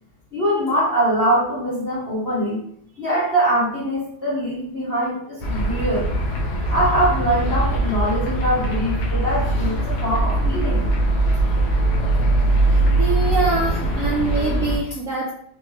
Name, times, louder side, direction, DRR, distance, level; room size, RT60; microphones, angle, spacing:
voice 1, 0.3-2.6 3.0-6.1 6.7-10.8, right 1 dB, 35° left, -8 dB, 1.2 m, -22 dB
sound 1, 5.4-14.8, right 1 dB, 75° left, 1.6 m, -21 dB
voice 2, 12.6-15.3, right 3 dB, 75° right, -3 dB, 0.7 m, -24 dB
4.8 x 3.1 x 3.2 m, 0.66 s
omnidirectional pair, 2.3 m